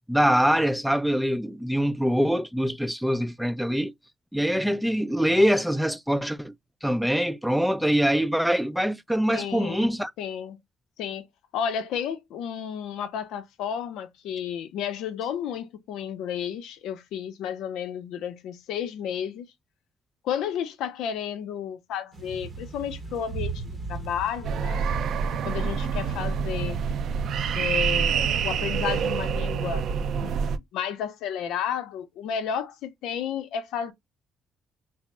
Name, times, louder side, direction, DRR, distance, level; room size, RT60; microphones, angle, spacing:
voice 1, 0.1-3.9 4.3-6.5 6.8-10.1, equal, ahead, 0.4 m, -24 dB
voice 2, 9.3-9.9 10.2-10.6 11.0-11.2 11.5-19.5 20.2-24.8 25.4-26.8 27.5-29.9 30.1-30.4 30.7-33.9, left 8 dB, 90° left, 0.6 m, -32 dB
sound 1, 22.1-29.4, right 4 dB, 40° right, 0.7 m, -40 dB
sound 2, 24.4-30.6, right 6 dB, 70° right, 0.4 m, -26 dB
3.4 x 2.0 x 4.1 m
cardioid pair, 90°, 0 cm